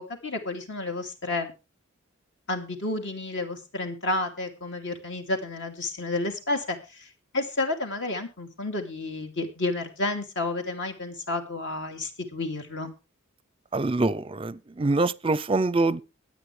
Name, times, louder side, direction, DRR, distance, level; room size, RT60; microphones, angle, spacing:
voice 1, 0.0-1.5 2.5-12.9, left 2 dB, 60° left, 2.8 m, -31 dB
voice 2, 13.7-16.0, right 2 dB, 25° right, 0.5 m, -25 dB
22.5 x 8.6 x 3.3 m
head